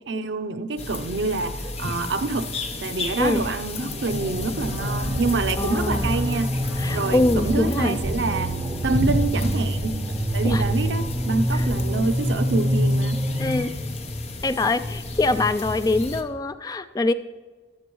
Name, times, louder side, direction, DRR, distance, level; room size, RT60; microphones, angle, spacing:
voice 1, 0.1-2.5 2.8-6.6 6.9-8.5 8.8-10.0 10.3-13.2, right 3 dB, 85° right, 0.6 m, -26 dB
Jardim (garden), 0.8-16.2, left 2 dB, 35° left, 0.9 m, -31 dB
sound 1, 3.8-13.6, equal, 10° right, 2.2 m, -26 dB
sound 2, 4.0-9.1, right 2 dB, 30° right, 2.8 m, -41 dB
voice 2, 5.6-6.1 6.8-8.0 10.4-10.6 11.5-11.7 13.4-13.7 14.4-17.1, left 2 dB, 20° left, 0.4 m, -24 dB
15.5 x 12.5 x 3.1 m
head